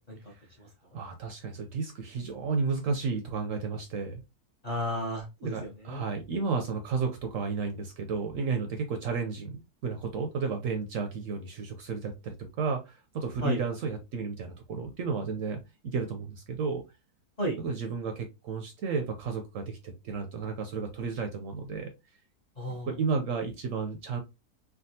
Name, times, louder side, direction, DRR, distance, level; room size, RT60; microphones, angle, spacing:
voice 1, 0.9-4.2 5.4-16.8 17.6-21.9 22.9-24.2, right 5 dB, 70° right, 0.8 m, -32 dB
voice 2, 4.6-6.0 13.4-13.6 17.4-17.6 22.6-22.9, equal, 35° left, 0.6 m, -33 dB
3.5 x 2.3 x 2.6 m
omnidirectional pair, 1.7 m